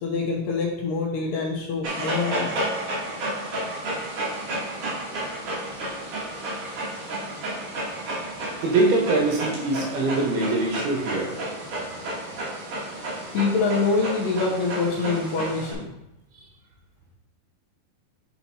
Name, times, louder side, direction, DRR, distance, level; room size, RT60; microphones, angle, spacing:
voice 1, 0.0-2.7 13.3-15.9, left 4 dB, 75° left, -2 dB, 2.2 m, -25 dB
Dog, 1.8-15.7, right 1 dB, 55° right, 3.0 m, -31 dB
voice 2, 8.6-11.4, right 2 dB, 75° right, -1 dB, 3.1 m, -23 dB
10.0 x 4.2 x 2.9 m, 0.87 s
omnidirectional pair, 4.5 m